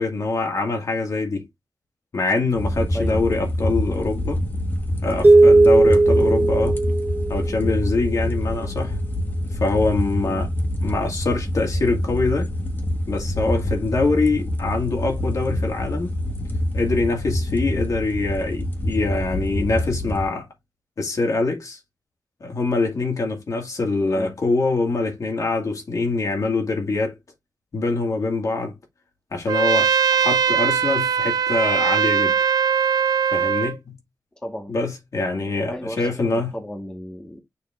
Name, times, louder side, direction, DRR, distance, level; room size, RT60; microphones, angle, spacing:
voice 1, 0.0-1.4 2.1-4.4 5.0-6.8 7.3-9.0 9.6-10.5 10.8-12.5 13.1-16.1 16.7-20.5 21.0-21.8 22.4-27.1 27.7-28.7 29.3-32.4 33.3-34.0 34.7-36.5, left 3 dB, 55° left, 2.2 m, -24 dB
sound 1, 2.6-20.2, left 1 dB, 30° left, 1.7 m, -26 dB
voice 2, 2.9-3.2 10.2-10.4 24.2-24.3 34.4-34.7 35.7-37.4, equal, 15° left, 1.5 m, -34 dB
sound 2, 5.2-7.8, right 2 dB, 25° right, 0.8 m, -16 dB
Trumpet, 29.5-33.8, right 7 dB, 80° right, 0.4 m, -20 dB
6.9 x 3.9 x 3.6 m
wide cardioid pair, 140°, 7 cm